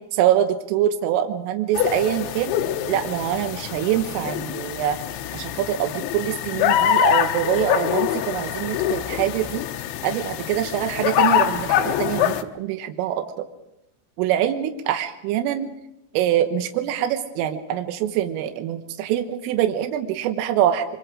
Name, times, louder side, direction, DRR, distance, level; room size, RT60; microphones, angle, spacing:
voice 1, 0.1-2.5 2.9-5.0 5.3-9.6 10.0-13.5 14.2-15.7 16.1-20.9, right 11 dB, 80° right, 6 dB, 3.7 m, -24 dB
sound 1, 1.8-12.4, left 11 dB, 75° left, 2.9 m, -24 dB
24.5 x 24.5 x 5.0 m, 0.88 s
omnidirectional pair, 5.9 m